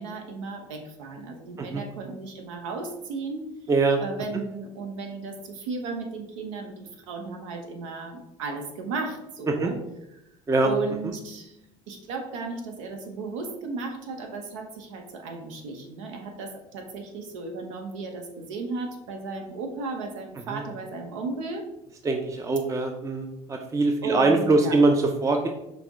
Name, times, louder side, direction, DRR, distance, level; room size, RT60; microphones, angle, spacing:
voice 1, 0.0-3.5 4.0-9.8 10.6-11.6 11.9-21.7 24.0-24.8, right 4 dB, 85° right, 4 dB, 0.7 m, -35 dB
voice 2, 3.7-4.0 9.5-9.7 10.5-10.7 11.0-11.1 20.5-20.6 22.0-25.5, right 3 dB, 20° right, 4 dB, 0.4 m, -23 dB
5.9 x 2.1 x 3.5 m, 0.89 s
hypercardioid pair, 70°, 16 cm